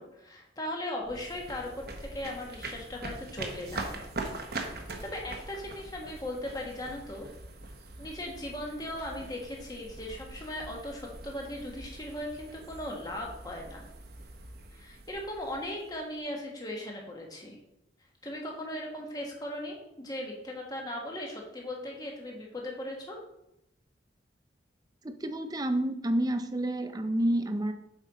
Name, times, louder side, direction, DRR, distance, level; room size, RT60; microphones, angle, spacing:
voice 1, 0.0-1.7 2.0-4.0 5.0-7.3 8.0-13.9 14.7-17.6 18.2-23.2, left 1 dB, 20° left, -1 dB, 1.3 m, -38 dB
sound 1, 1.0-16.2, right 2 dB, 55° right, 1.0 m, -43 dB
voice 2, 25.0-27.7, right 1 dB, 20° right, 8 dB, 0.5 m, -29 dB
7.4 x 5.2 x 4.1 m, 0.85 s
head